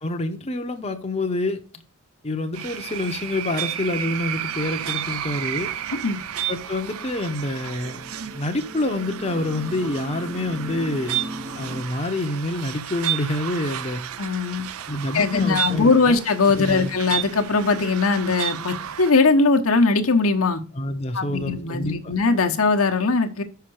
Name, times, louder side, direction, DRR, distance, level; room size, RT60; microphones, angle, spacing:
voice 1, 0.0-1.6 2.2-5.7 6.5-11.2 11.5-14.0 14.9-16.1 16.5-16.9 20.7-22.1, left 1 dB, 30° left, 0.8 m, -27 dB
sound 1, 2.5-19.1, right 11 dB, 70° right, 0.5 m, -32 dB
sound 2, 6.8-11.8, equal, 30° right, 0.6 m, -38 dB
voice 2, 14.2-14.7 15.1-20.6 21.1-23.4, left 4 dB, 70° left, 1.0 m, -20 dB
5.8 x 5.7 x 6.3 m
head